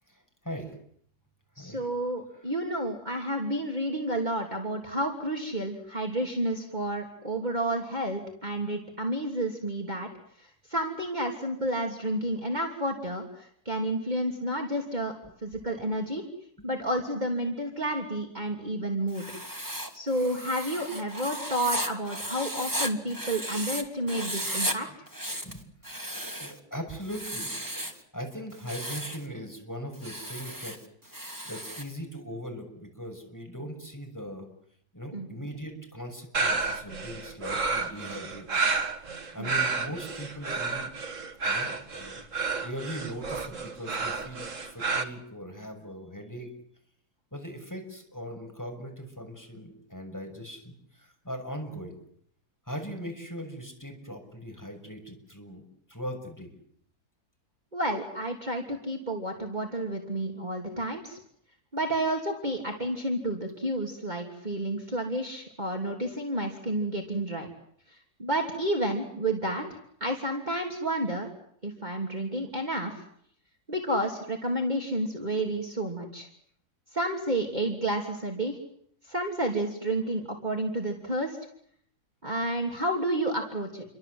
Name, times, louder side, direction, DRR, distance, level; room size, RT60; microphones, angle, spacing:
voice 1, 0.4-0.7 1.6-1.8 25.4-25.6 26.4-27.5 28.1-30.8 31.0-34.5 34.9-38.6 39.3-40.9 41.4-46.5 47.3-52.0 52.7-55.6 55.9-56.5, equal, 10° left, 3 dB, 6.5 m, -40 dB
voice 2, 1.6-10.1 10.4-15.1 15.4-16.3 16.6-19.3 19.9-24.9 35.1-35.3 39.4-39.5 57.7-61.2 61.7-67.5 67.9-71.3 71.6-73.0 73.7-76.3 76.9-78.6 79.1-81.4 82.2-83.8, right 1 dB, 25° right, 1 dB, 3.4 m, -30 dB
Writing, 19.1-23.8 24.1-24.8 25.1-26.6 27.0-28.0 28.5-29.2 29.9-31.9, right 1 dB, 10° right, 2.6 m, -35 dB
sound 1, 36.3-45.0, right 4 dB, 55° right, 2.4 m, -30 dB
30.0 x 24.0 x 8.0 m, 0.66 s
omnidirectional pair, 1.6 m